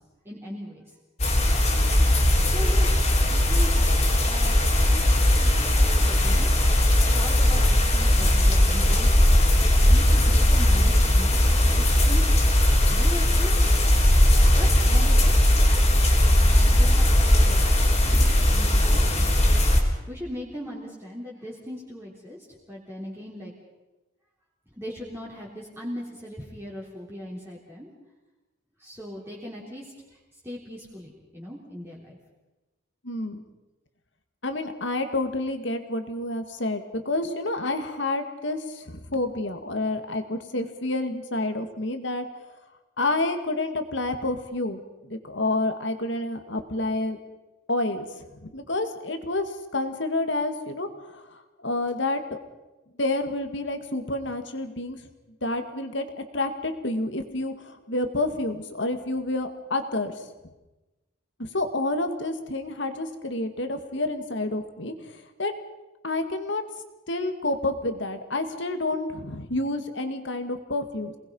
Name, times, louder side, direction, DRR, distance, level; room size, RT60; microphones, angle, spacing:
voice 1, 0.3-0.8 2.4-3.0 3.3-3.8 4.2-4.6 4.9-6.5 7.1-12.3 12.9-13.5 14.5-15.4 16.5-17.6 18.5-19.3 20.1-22.4 22.7-23.5 24.7-27.9 28.8-30.2 30.4-32.2, equal, 10° right, -6 dB, 3.6 m, -39 dB
sound 1, 1.2-19.8, left 1 dB, 30° left, 3.5 m, -19 dB
voice 2, 33.0-33.4 34.4-42.3 43.0-47.2 47.7-52.4 53.0-55.0 55.4-56.1 56.3-60.1 61.4-65.5 66.0-66.6 67.1-71.2, left 2 dB, 60° left, 7 dB, 2.2 m, -29 dB
28.0 x 20.0 x 5.6 m, 1.1 s
head